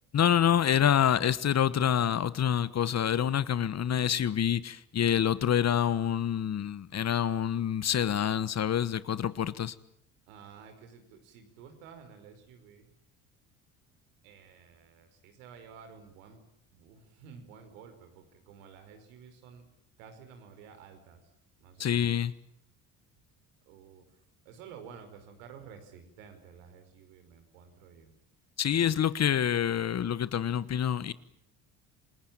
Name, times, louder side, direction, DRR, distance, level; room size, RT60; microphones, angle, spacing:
voice 1, 0.1-9.7 21.8-22.3 28.6-31.1, left 9 dB, 40° left, 1.4 m, -27 dB
voice 2, 10.3-12.9 14.2-16.4 16.7-19.6 20.0-21.3 21.6-22.1 23.6-24.2 24.4-28.1, right 6 dB, 85° right, 5.3 m, -52 dB
28.0 x 20.0 x 8.9 m
supercardioid pair, 75°, 39 cm